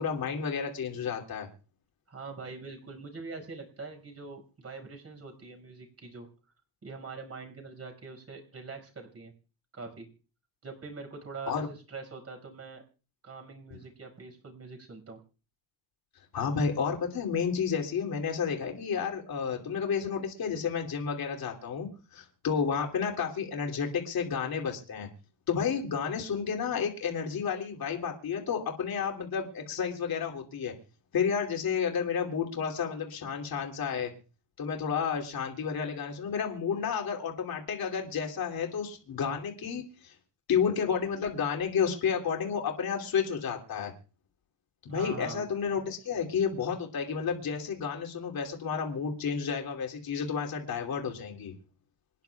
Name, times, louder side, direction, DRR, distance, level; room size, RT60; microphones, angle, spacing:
voice 1, 0.0-1.5 11.5-11.7 16.3-25.1 25.5-30.7 31.1-34.1 34.6-40.2 40.5-43.9 44.8-51.5, left 6 dB, 50° left, 1 dB, 2.9 m, -31 dB
voice 2, 2.1-6.3 6.8-9.3 9.7-10.1 10.6-12.8 13.2-15.2 44.9-45.5, right 4 dB, 30° right, 4 dB, 5.3 m, -43 dB
26.5 x 10.5 x 2.3 m, 0.36 s
cardioid pair, 100°, 46 cm